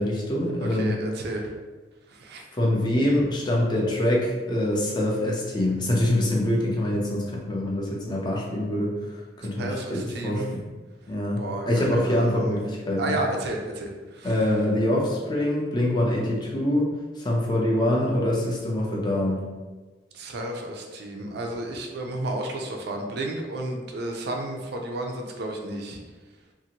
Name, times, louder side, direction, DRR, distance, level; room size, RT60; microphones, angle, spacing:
voice 1, 0.0-1.0 2.6-8.9 9.4-10.6 11.1-13.2 14.2-16.9 17.2-19.5, left 1 dB, 25° left, -3 dB, 0.5 m, -24 dB
voice 2, 0.6-1.5 2.1-2.4 9.6-10.5 11.4-12.5 13.0-14.3 20.1-26.0, right 1 dB, 65° right, 2 dB, 0.4 m, -32 dB
2.7 x 2.5 x 2.8 m, 1.3 s
head